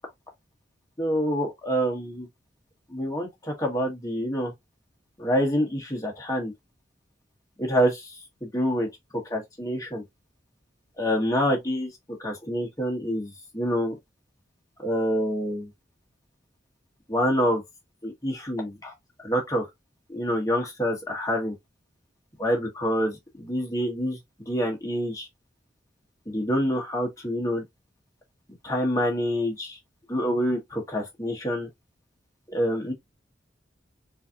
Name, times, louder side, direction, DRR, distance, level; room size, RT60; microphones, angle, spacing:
voice 1, 1.0-2.3 2.9-4.5 5.2-6.5 7.6-8.2 8.4-8.9 9.3-10.0 11.0-11.9 12.2-13.9 14.8-15.7 17.1-17.6 18.0-18.9 19.2-19.7 20.1-21.5 22.4-24.2 24.5-25.3 26.3-27.6 28.6-29.8 30.1-31.7 32.5-32.9, equal, 20° left, 1.2 m, -26 dB
3.9 x 2.7 x 2.4 m
head